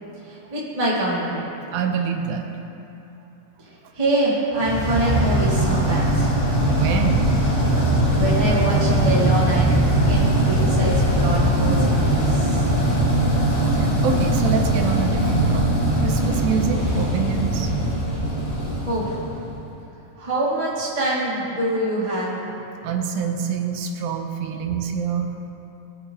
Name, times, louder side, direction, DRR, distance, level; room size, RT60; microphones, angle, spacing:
voice 1, 0.2-1.4 3.6-6.3 8.1-12.7 18.8-19.2 20.2-22.4, right 1 dB, 35° right, -7 dB, 0.6 m, -25 dB
voice 2, 1.7-2.5 6.6-7.3 13.7-17.7 22.8-25.3, right 6 dB, 80° right, 4 dB, 2.4 m, -26 dB
sound 1, 4.6-19.6, right 1 dB, 55° left, 0.7 m, -20 dB
17.5 x 6.6 x 2.8 m, 2.9 s
omnidirectional pair, 4.3 m